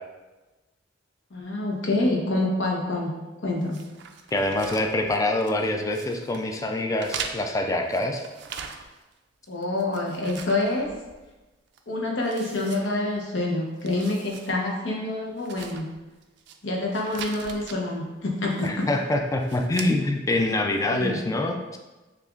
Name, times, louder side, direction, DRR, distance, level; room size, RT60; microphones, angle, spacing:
voice 1, 1.3-3.8 9.5-10.9 11.9-15.9 16.6-18.9 20.9-21.2, left 2 dB, 70° left, -2 dB, 0.9 m, -27 dB
sound 1, 3.7-5.6 5.9-6.5 7.0-9.1 9.5-11.4 11.7-11.8 12.2-13.4 13.7-14.5 14.8-14.9 15.4-16.6 16.9-17.8 18.5-18.9 19.4-19.9, right 6 dB, 65° right, 0.3 m, -40 dB
voice 2, 4.3-8.2 18.6-21.8, left 2 dB, 15° left, 3 dB, 0.3 m, -25 dB
6.5 x 2.4 x 2.4 m, 1.1 s
head